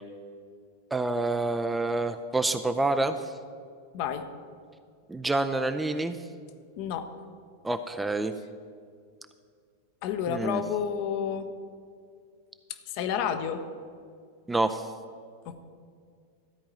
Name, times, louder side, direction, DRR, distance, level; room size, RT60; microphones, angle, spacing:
voice 1, 0.9-3.2 5.1-6.2 7.6-8.3 10.3-10.6 14.5-14.8, right 2 dB, 10° right, 9 dB, 0.5 m, -27 dB
voice 2, 3.9-4.3 6.8-7.1 10.0-11.5 12.7-13.6 15.4-15.6, left 8 dB, 45° left, 8 dB, 0.8 m, -30 dB
13.0 x 4.8 x 8.7 m, 2.1 s
figure-of-eight pair, 90°, 0 cm